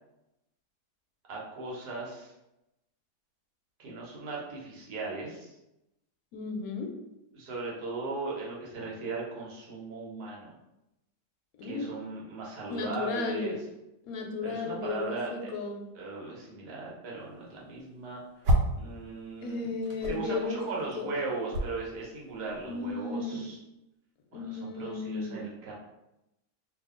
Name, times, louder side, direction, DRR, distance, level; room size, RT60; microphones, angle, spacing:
voice 1, 1.3-2.3 3.8-5.5 7.3-10.5 11.6-13.6 14.4-15.5 15.9-18.2 18.7-19.7 20.1-23.6 24.3-25.7, right 3 dB, 70° right, -3 dB, 1.4 m, -38 dB
voice 2, 6.3-6.9 11.6-11.9 12.7-13.6 14.1-15.9 19.4-20.6 21.0-21.1 22.7-23.5 24.3-25.5, left 4 dB, 70° left, 2 dB, 0.9 m, -34 dB
sound 1, 17.3-18.9 19.2-22.9, equal, 90° right, 1.2 m, -31 dB
2.8 x 2.5 x 3.6 m, 0.90 s
omnidirectional pair, 1.8 m